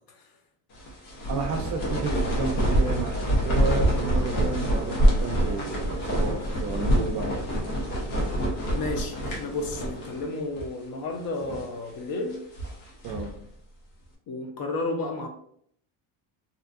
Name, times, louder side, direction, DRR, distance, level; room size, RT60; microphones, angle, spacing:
sound 1, 0.8-10.3 10.6-10.7 11.3-11.8 12.3-13.4, right 1 dB, 90° left, 1.0 m, -26 dB
voice 1, 1.3-7.3 13.0-13.3, right 4 dB, 40° right, 4 dB, 0.4 m, -32 dB
voice 2, 8.7-12.4 14.3-15.3, left 2 dB, 45° left, 3 dB, 0.7 m, -32 dB
2.8 x 2.5 x 2.4 m, 0.67 s
cardioid pair, 105°, 47 cm